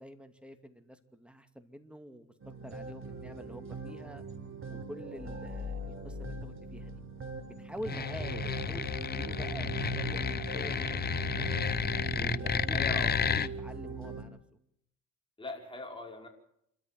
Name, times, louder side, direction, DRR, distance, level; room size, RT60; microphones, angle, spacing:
voice 1, 0.0-4.2 4.7-6.9 7.6-8.9 9.2-10.9 11.4-11.6 12.2-14.4, equal, 5° right, 8 dB, 2.6 m, -47 dB
sound 1, 2.4-14.2, right 4 dB, 45° right, 4.3 m, -40 dB
sound 2, 5.2-8.1, left 7 dB, 60° left, 1.4 m, -44 dB
sound 3, 7.8-13.5, left 7 dB, 35° left, 0.8 m, -32 dB
voice 2, 12.7-13.2 15.4-16.3, left 2 dB, 15° left, 2 dB, 5.5 m, -41 dB
28.0 x 13.5 x 7.8 m, 0.73 s
cardioid pair, 90°, 30 cm